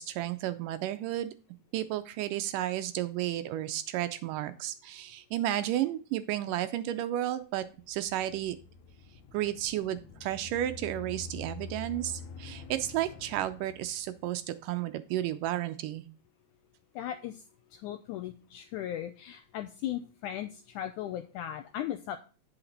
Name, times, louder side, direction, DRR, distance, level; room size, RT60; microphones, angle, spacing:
voice 1, 0.0-1.3 1.7-8.6 9.3-16.0, right 13 dB, 80° right, 11 dB, 2.0 m, -32 dB
sound 1, 7.6-14.5, left 4 dB, 70° left, 1.9 m, -47 dB
voice 2, 16.9-17.4 17.7-22.2, left 11 dB, 90° left, 8 dB, 1.7 m, -37 dB
8.8 x 5.9 x 3.9 m, 0.36 s
omnidirectional pair, 4.1 m